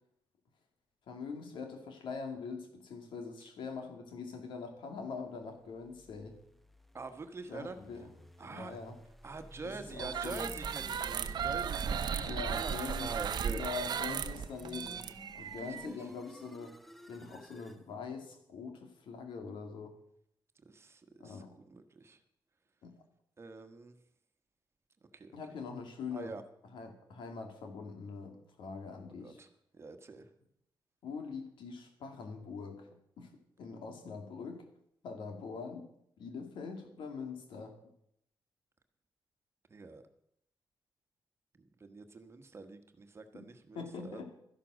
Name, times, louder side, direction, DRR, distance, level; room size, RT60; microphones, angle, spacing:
voice 1, 1.1-6.4 7.5-8.1 8.5-9.0 9.6-10.5 12.3-13.1 13.5-15.1 15.3-16.8 17.1-19.9 21.2-21.5 22.8-22.9 25.3-26.3 26.7-29.4 31.0-32.9 33.2-33.3 33.6-34.7 35.0-35.9 36.2-37.8 43.3-43.4 43.7-44.3, left 5 dB, 85° left, 5 dB, 2.5 m, -43 dB
sound 1, 5.6-17.8, equal, ahead, 0.7 m, -54 dB
voice 2, 6.9-7.8 8.4-8.8 9.2-13.6 15.6-16.1 20.6-22.2 23.4-24.0 25.1-25.4 26.1-26.4 29.2-29.5 29.7-30.3 39.7-40.0 41.8-44.3, right 3 dB, 30° right, 7 dB, 1.3 m, -45 dB
sound 2, 9.9-15.9, right 7 dB, 60° right, 0.8 m, -36 dB
13.0 x 11.5 x 6.3 m, 0.75 s
cardioid pair, 125°, 8 cm